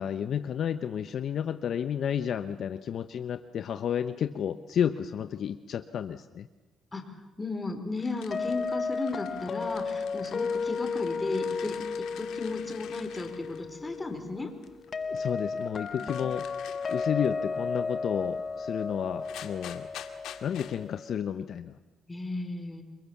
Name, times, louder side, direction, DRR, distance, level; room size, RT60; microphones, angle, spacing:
voice 1, 0.0-6.5 15.1-16.5 16.9-19.9 20.4-21.7, left 8 dB, 65° left, 9 dB, 1.0 m, -31 dB
voice 2, 6.9-11.8 12.2-14.5 15.9-16.1 22.1-22.8, left 3 dB, 20° left, 5 dB, 4.8 m, -35 dB
sound 1, 8.0-14.0 14.6-17.3 18.8-18.9 19.2-20.8, left 10 dB, 85° left, 2.1 m, -48 dB
sound 2, 8.3-21.2, left 4 dB, 45° left, 1.2 m, -34 dB
28.5 x 23.5 x 7.3 m, 1.2 s
cardioid pair, 90°, 0 cm